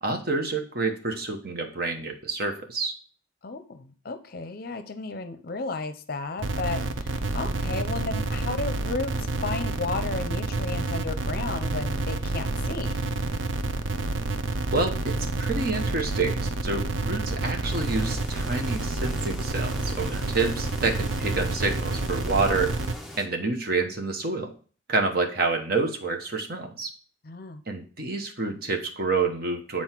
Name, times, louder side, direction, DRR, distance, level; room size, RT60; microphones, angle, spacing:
voice 1, 0.0-2.9 8.1-8.2 14.7-22.8 23.2-24.5 24.9-26.9 27.7-29.8, right 3 dB, 50° right, 4 dB, 1.1 m, -28 dB
voice 2, 3.4-9.1 9.4-13.0 27.2-27.6, left 3 dB, 50° left, 10 dB, 0.6 m, -33 dB
sound 1, 6.4-22.9, right 2 dB, 80° right, 0.6 m, -29 dB
sound 2, 17.7-23.3, left 1 dB, ahead, 0.6 m, -42 dB
7.8 x 4.3 x 4.5 m, 0.40 s
head